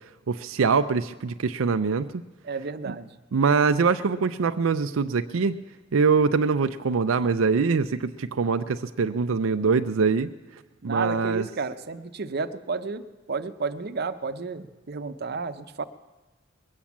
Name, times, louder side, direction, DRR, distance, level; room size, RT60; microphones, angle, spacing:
voice 1, 0.3-2.2 3.3-5.5 5.9-10.3 10.8-11.5, right 5 dB, 90° right, 9 dB, 0.5 m, -23 dB
voice 2, 2.4-3.1 10.8-13.0 13.3-15.8, right 4 dB, 55° right, 9 dB, 0.7 m, -31 dB
21.0 x 8.7 x 7.2 m, 1.2 s
head